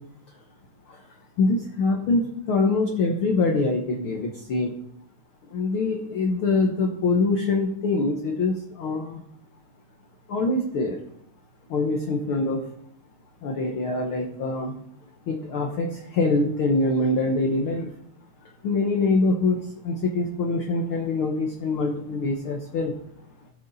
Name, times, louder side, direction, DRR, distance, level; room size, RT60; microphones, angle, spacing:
voice 1, 1.4-4.7 5.5-9.2 10.3-11.0 11.7-12.7 13.4-14.7 15.3-17.9 18.6-22.9, left 3 dB, 60° left, 1 dB, 1.5 m, -24 dB
16.0 x 6.6 x 4.1 m, 0.71 s
omnidirectional pair, 3.6 m